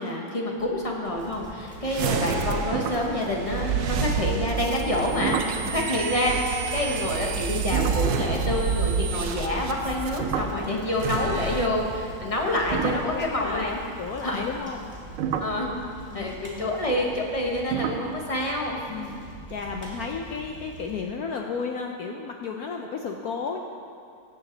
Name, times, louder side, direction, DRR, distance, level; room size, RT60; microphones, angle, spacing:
voice 1, 0.0-13.8 14.2-14.5 15.4-15.8 16.1-19.2, left 1 dB, 25° left, -1 dB, 0.8 m, -27 dB
sound 1, 0.6-1.3 1.5-1.9 2.3-2.4 2.7-4.0 5.2-5.7 7.6-11.2 11.9-14.2 14.8-20.1, right 7 dB, 90° right, 1.5 m, -34 dB
Bicycle, 1.0-21.0, equal, 5° right, 2.0 m, -41 dB
sound 2, 1.9-10.2 10.9-11.7, right 6 dB, 65° right, 1.0 m, -29 dB
voice 2, 13.0-13.6 14.0-14.9 16.1-16.7 18.9-19.2 19.5-23.6, left 5 dB, 80° left, 2 dB, 0.8 m, -33 dB
17.5 x 7.1 x 3.9 m, 2.4 s
omnidirectional pair, 2.3 m